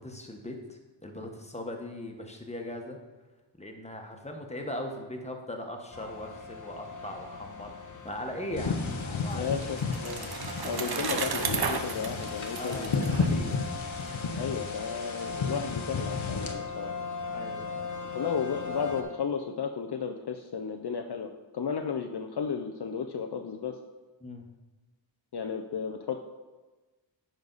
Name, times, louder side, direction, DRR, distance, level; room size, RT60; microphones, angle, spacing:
voice 1, 0.0-3.0 3.6-7.7 8.0-10.0 12.6-13.6 17.3-17.9 24.2-24.5, left 1 dB, 15° left, 2 dB, 1.3 m, -39 dB
sound 1, 5.9-19.0, left 4 dB, 40° left, 1.2 m, -39 dB
sound 2, 8.6-16.5, left 4 dB, 75° left, 1.0 m, -33 dB
Bicycle, 9.0-14.1, right 5 dB, 50° right, 0.9 m, -34 dB
voice 2, 9.3-10.2 10.6-13.1 14.4-16.9 18.1-23.8 25.3-26.3, left 6 dB, 55° left, 5 dB, 0.6 m, -34 dB
9.8 x 5.3 x 4.0 m, 1.2 s
wide cardioid pair, 50°, 47 cm